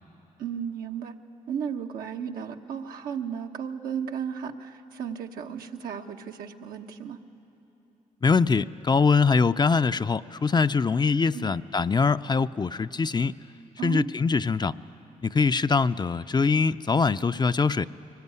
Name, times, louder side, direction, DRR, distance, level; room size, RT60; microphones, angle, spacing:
voice 1, 0.4-1.1 1.5-7.2 11.3-11.5 13.8-14.1, right 7 dB, 80° right, 3 dB, 1.1 m, -34 dB
voice 2, 8.2-13.3 13.8-14.8 15.2-17.9, left 4 dB, 30° left, 12 dB, 0.5 m, -23 dB
23.5 x 20.0 x 9.5 m, 3.0 s
cardioid pair, 60°, 15 cm